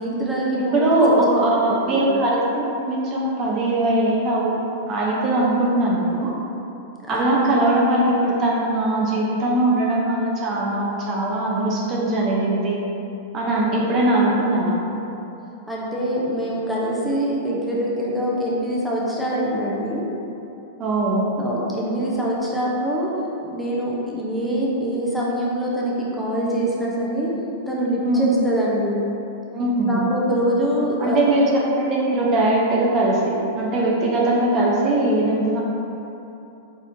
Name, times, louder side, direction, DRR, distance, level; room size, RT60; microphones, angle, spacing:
voice 1, 0.0-1.0 1.7-2.1 7.1-7.3 15.7-20.1 21.4-23.2 23.5-27.3 27.7-29.1 29.8-31.3, right 1 dB, ahead, -7 dB, 0.8 m, -24 dB
voice 2, 0.6-4.5 4.9-6.3 7.1-12.8 13.3-14.8 20.8-21.3 28.0-28.3 29.5-30.1 31.0-35.6, right 1 dB, 35° right, -4 dB, 0.7 m, -20 dB
4.2 x 3.5 x 2.7 m, 2.9 s
hypercardioid pair, 105°, 0 cm